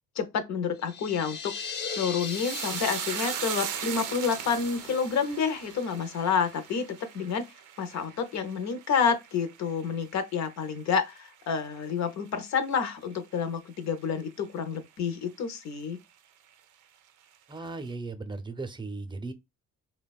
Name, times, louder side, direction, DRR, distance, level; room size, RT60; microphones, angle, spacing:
voice 1, 0.2-1.6 2.0-7.5 7.8-16.0, left 6 dB, 65° left, 0.7 m, -29 dB
sound 1, 0.8-6.4, left 5 dB, 35° left, 0.6 m, -40 dB
sound 2, 2.2-10.8 11.1-11.8 12.1-12.3, right 10 dB, 90° right, 0.5 m, -38 dB
voice 2, 17.5-19.3, right 3 dB, 15° right, 0.6 m, -37 dB
3.3 x 2.2 x 2.2 m
cardioid pair, 90°, 30 cm